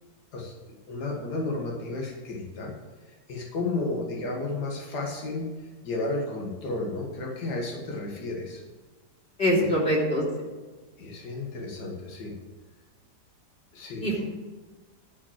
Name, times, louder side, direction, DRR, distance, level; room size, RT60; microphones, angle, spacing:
voice 1, 0.3-2.7 3.0-8.6 9.5-9.7 11.0-12.4 13.7-14.2, left 2 dB, 70° left, -1 dB, 2.3 m, -33 dB
voice 2, 9.4-10.2 14.0-14.2, equal, 35° left, -4 dB, 3.2 m, -23 dB
12.0 x 5.3 x 7.4 m, 1.3 s
omnidirectional pair, 1.8 m